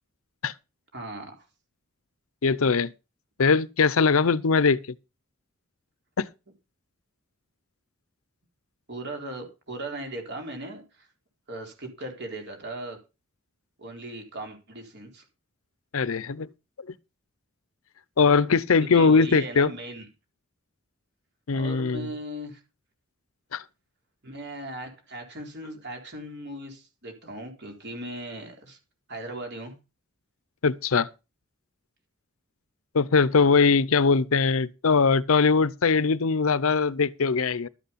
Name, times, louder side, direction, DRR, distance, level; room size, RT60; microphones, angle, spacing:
voice 1, 0.9-1.5 8.9-11.1 11.5-13.0 13.8-15.2 18.8-20.1 21.5-22.6 24.2-28.8 29.1-29.8, right 1 dB, 55° right, 3.9 m, -38 dB
voice 2, 2.4-2.9 3.4-4.8 6.2-6.3 15.9-16.5 18.2-19.7 21.5-22.1 23.5-23.6 30.6-31.1 32.9-37.7, left 5 dB, 75° left, 0.6 m, -21 dB
12.5 x 8.2 x 5.6 m
head